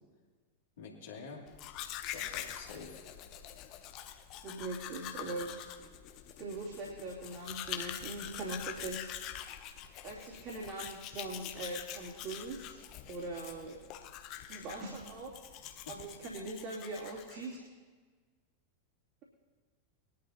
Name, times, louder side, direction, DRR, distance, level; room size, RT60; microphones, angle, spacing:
voice 1, 0.8-1.5 2.1-3.0 15.9-16.0, left 5 dB, 60° left, -3 dB, 2.7 m, -47 dB
Domestic sounds home sounds, 1.5-17.6, left 11 dB, 40° left, 0.9 m, -45 dB
voice 2, 4.4-5.6 6.4-9.1 10.0-12.8 13.1-13.8 14.5-15.3 15.9-17.6, right 2 dB, 40° right, -9 dB, 3.0 m, -41 dB
21.0 x 11.5 x 2.9 m, 1.5 s
figure-of-eight pair, 90°, 0 cm